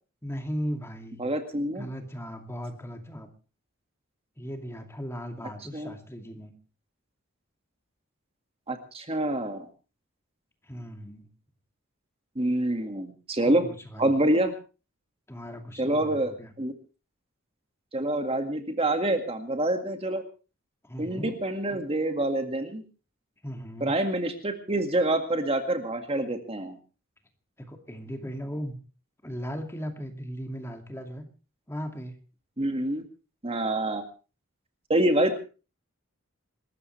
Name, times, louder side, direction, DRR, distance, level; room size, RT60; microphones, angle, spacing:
voice 1, 0.2-1.2 1.8-3.3 4.4-6.5 10.6-11.3 13.5-14.1 15.3-16.5 20.8-21.4 21.7-21.8 23.4-23.9 27.6-28.8 29.2-31.3 31.7-32.1, equal, 10° left, 5 dB, 2.4 m, -37 dB
voice 2, 1.2-1.9 5.7-5.9 8.7-9.7 12.4-13.7 14.0-14.5 15.8-16.7 17.9-20.2 21.0-22.8 23.8-26.8 32.6-33.0 33.4-34.1 34.9-35.4, right 1 dB, 25° right, 6 dB, 2.0 m, -26 dB
27.5 x 14.0 x 3.3 m, 0.35 s
head